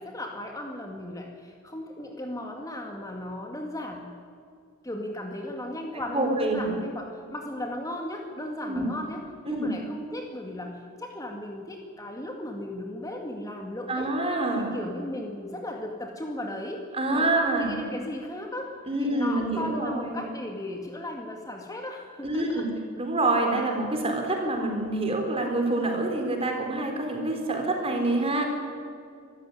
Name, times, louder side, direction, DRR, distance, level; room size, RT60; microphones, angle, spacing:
voice 1, 0.0-4.1 4.8-14.1 14.5-16.8 17.1-22.7, left 1 dB, 15° left, 2 dB, 1.9 m, -36 dB
voice 2, 5.9-6.8 8.7-8.9 9.4-9.7 13.9-14.7 16.9-17.9 18.9-20.2 22.2-22.7 23.0-28.4, right 2 dB, 25° right, 3 dB, 4.1 m, -26 dB
25.0 x 14.5 x 9.9 m, 2.3 s
head